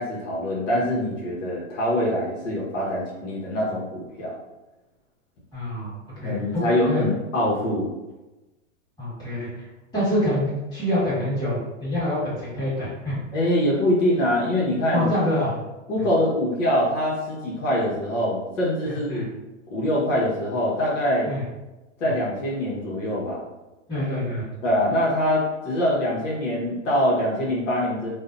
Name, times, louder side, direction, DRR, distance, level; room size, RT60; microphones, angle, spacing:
voice 1, 0.0-4.3 6.2-7.9 13.3-15.1 15.9-19.3 19.7-21.3 22.0-23.4 24.6-28.1, left 1 dB, 70° left, -5 dB, 0.9 m, -24 dB
voice 2, 5.5-5.9 6.2-7.0 9.0-9.7 9.9-13.2 14.9-15.6 16.0-16.1 18.8-19.3 21.3-21.4 22.0-22.1 23.9-24.4, left 1 dB, 10° left, -10 dB, 1.4 m, -26 dB
2.6 x 2.1 x 2.5 m, 1.1 s
hypercardioid pair, 125°, 39 cm